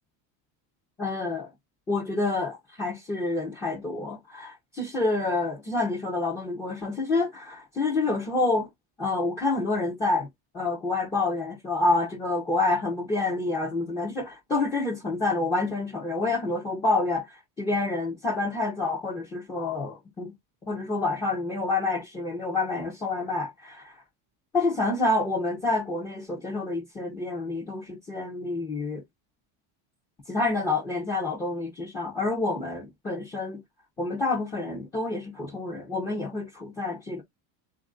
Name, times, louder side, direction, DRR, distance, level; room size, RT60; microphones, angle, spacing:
voice 1, 1.0-1.5 1.9-8.7 9.0-10.3 10.5-20.3 20.6-24.0 24.5-29.0 30.3-33.6 34.0-37.2, left 2 dB, 10° left, 0.4 m, -28 dB
3.6 x 2.4 x 3.6 m
cardioid pair, 175°, 46 cm